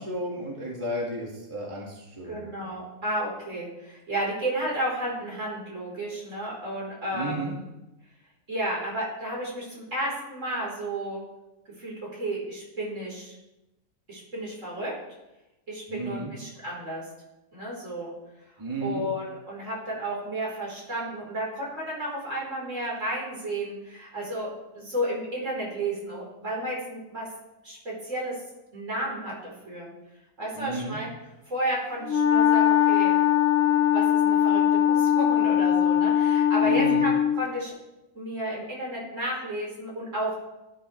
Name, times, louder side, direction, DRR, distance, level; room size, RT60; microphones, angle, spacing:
voice 1, 0.0-2.5 7.1-7.6 15.9-16.3 18.6-19.1 30.6-31.0 36.6-37.0, right 1 dB, 20° right, -3 dB, 2.0 m, -33 dB
voice 2, 2.3-7.5 8.5-11.2 11.8-13.3 14.1-14.9 15.7-17.0 17.5-18.1 18.8-27.3 27.6-28.4 28.7-29.9 30.4-31.1 31.5-33.2 33.7-37.7 38.1-40.4, right 1 dB, 55° right, -4 dB, 4.4 m, -32 dB
Wind instrument woodwind instrument, 32.0-37.4, left 10 dB, 75° left, 1.1 m, -21 dB
15.0 x 10.5 x 3.3 m, 0.97 s
omnidirectional pair, 1.5 m